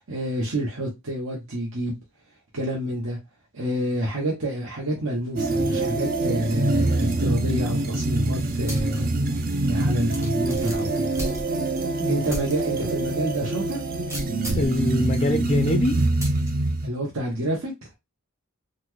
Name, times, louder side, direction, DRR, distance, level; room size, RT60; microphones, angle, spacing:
voice 1, 0.0-2.0 2.5-3.2 3.5-9.1 9.6-11.2 12.0-13.8 16.8-17.7, right 1 dB, 65° right, 0.9 m, -28 dB
sound 1, 5.4-16.9, right 2 dB, 40° right, 0.4 m, -25 dB
sound 2, 8.7-9.0 9.4-9.5 10.1-11.8 12.3-12.5 13.0-13.1 14.1-14.8 16.2-16.5, right 1 dB, 15° right, 0.7 m, -34 dB
voice 2, 14.5-16.0, left 1 dB, 25° left, 0.4 m, -24 dB
4.0 x 2.1 x 3.1 m
head